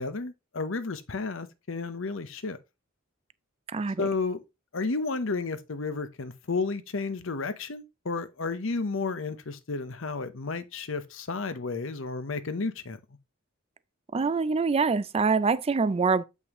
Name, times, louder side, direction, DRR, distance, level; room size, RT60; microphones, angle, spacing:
voice 1, 0.0-2.6 4.0-4.4 4.7-13.0, left 4 dB, 70° left, 0.9 m, -32 dB
voice 2, 3.7-4.1 14.1-16.2, right 4 dB, 30° right, 0.4 m, -25 dB
8.1 x 5.4 x 3.0 m
head